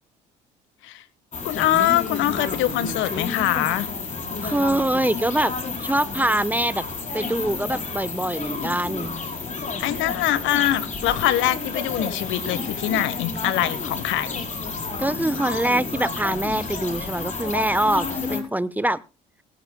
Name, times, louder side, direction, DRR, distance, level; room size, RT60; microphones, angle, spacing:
sound 1, 1.3-18.4, left 4 dB, 35° left, 5.2 m, -30 dB
voice 1, 1.4-3.9 9.8-14.4, left 13 dB, 65° left, 15 dB, 1.3 m, -23 dB
voice 2, 4.4-5.5 5.8-6.8 7.1-9.2 15.0-19.0, right 1 dB, 10° right, 16 dB, 1.0 m, -24 dB
24.0 x 11.5 x 2.3 m, 0.31 s
hypercardioid pair, 55°, 21 cm